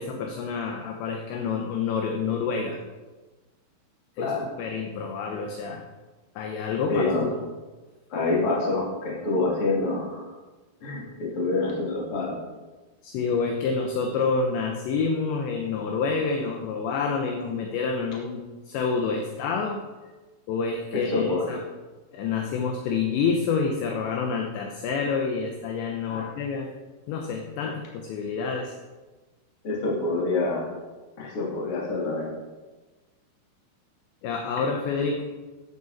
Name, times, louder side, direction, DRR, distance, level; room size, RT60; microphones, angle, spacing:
voice 1, 0.0-2.8 4.2-5.8 6.4-7.4 13.0-19.8 20.5-21.6 22.1-26.7 27.1-28.7 34.2-35.2, left 5 dB, 75° left, 3 dB, 3.0 m, -28 dB
voice 2, 6.9-7.2 8.1-10.3 10.8-12.4 20.9-21.5 26.1-26.3 29.6-30.7 31.2-32.3, left 3 dB, 35° left, -4 dB, 2.9 m, -26 dB
14.0 x 10.0 x 4.2 m, 1.2 s
omnidirectional pair, 5.6 m